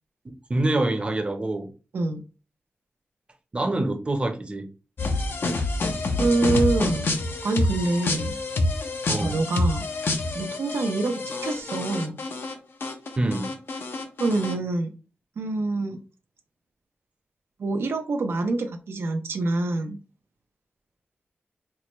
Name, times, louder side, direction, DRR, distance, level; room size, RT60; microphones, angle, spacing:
voice 1, 0.5-1.7 3.5-4.7 9.1-9.4 13.2-13.5, right 2 dB, 30° right, 0.6 m, -25 dB
sound 1, 5.0-12.5 12.8-14.5, left 2 dB, 65° left, 0.6 m, -27 dB
voice 2, 6.2-7.1 7.4-8.4 9.1-9.9 10.3-12.2 14.2-14.9 15.4-16.0 17.6-20.0, right 2 dB, 80° right, 0.5 m, -26 dB
4.5 x 2.1 x 3.0 m
wide cardioid pair, 135°, 4 cm